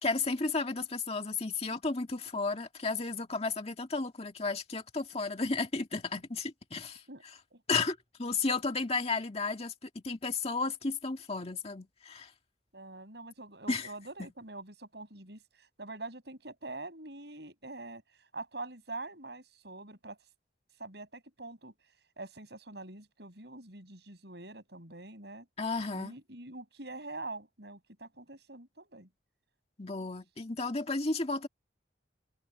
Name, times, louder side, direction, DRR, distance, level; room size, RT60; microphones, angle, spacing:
voice 1, 0.0-7.0 7.7-12.3 13.7-13.9 25.6-26.1 29.8-31.5, left 3 dB, 35° left, 2.0 m, -33 dB
voice 2, 12.7-18.0 18.3-20.2 20.8-21.7 22.2-25.5 25.9-29.1, right 2 dB, 65° right, 6.8 m, -45 dB
open air
head